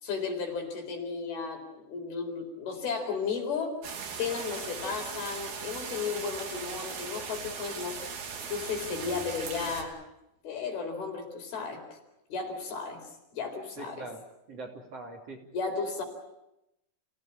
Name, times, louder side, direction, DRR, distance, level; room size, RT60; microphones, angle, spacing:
voice 1, 0.0-3.7 4.2-8.0 8.4-10.0 10.4-12.0 12.3-13.0 13.3-14.1 15.5-16.0, left 5 dB, 70° left, 4 dB, 6.2 m, -34 dB
sound 1, 3.8-9.8, right 6 dB, 70° right, 4.6 m, -39 dB
voice 2, 13.8-14.2 14.5-15.4, right 2 dB, 40° right, 1 dB, 3.6 m, -42 dB
29.0 x 17.0 x 8.7 m, 0.89 s
omnidirectional pair, 4.6 m